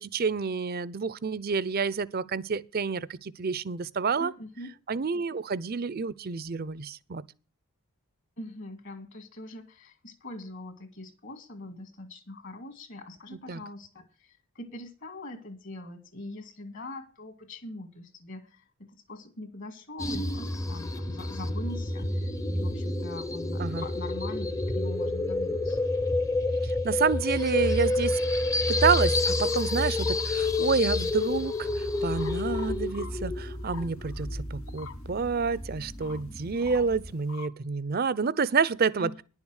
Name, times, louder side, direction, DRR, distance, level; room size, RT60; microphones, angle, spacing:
voice 1, 0.0-4.3 4.9-7.2 13.5-13.6 23.6-23.8 26.6-28.2 28.7-39.1, right 5 dB, 45° right, 0.5 m, -28 dB
voice 2, 4.2-4.8 8.4-25.8 39.0-39.2, left 1 dB, 55° left, 2.0 m, -43 dB
sound 1, 20.0-37.1, left 2 dB, 15° left, 0.6 m, -29 dB
sound 2, 28.7-31.5 31.7-37.5, left 6 dB, 75° left, 1.1 m, -48 dB
10.5 x 7.2 x 6.3 m
head